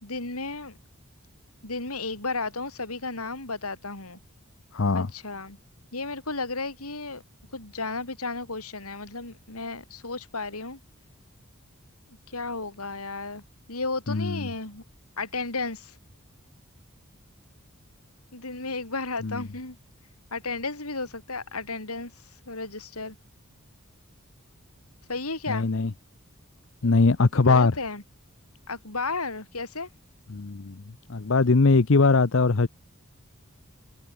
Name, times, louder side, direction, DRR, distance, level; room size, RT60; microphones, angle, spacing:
voice 1, 0.0-0.8 1.6-4.2 4.9-5.6 5.9-7.2 7.5-10.8 12.3-13.4 13.7-14.8 15.2-16.0 18.3-19.8 20.3-22.1 22.5-23.2 25.1-25.7 27.5-28.0 28.7-29.9, left 3 dB, 90° left, 5.4 m, -33 dB
voice 2, 4.7-5.1 14.1-14.5 19.2-19.4 25.5-25.9 26.8-27.8 30.3-30.8 31.1-32.7, left 3 dB, 60° left, 0.7 m, -21 dB
head